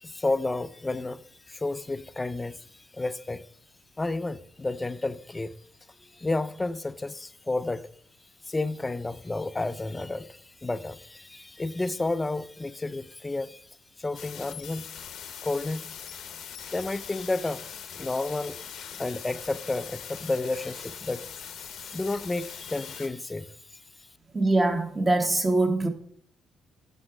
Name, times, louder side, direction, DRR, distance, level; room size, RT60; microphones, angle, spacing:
voice 1, 0.0-2.6 2.9-3.4 4.0-5.5 6.1-7.9 8.5-13.6 14.0-14.8 15.4-16.0 16.7-21.3 21.9-23.5, left 2 dB, 20° left, 0.3 m, -31 dB
sound 1, 14.1-23.1, left 8 dB, 75° left, 0.7 m, -42 dB
voice 2, 24.3-25.9, right 2 dB, 20° right, 1.0 m, -23 dB
5.8 x 4.4 x 4.9 m
cardioid pair, 90°, 0 cm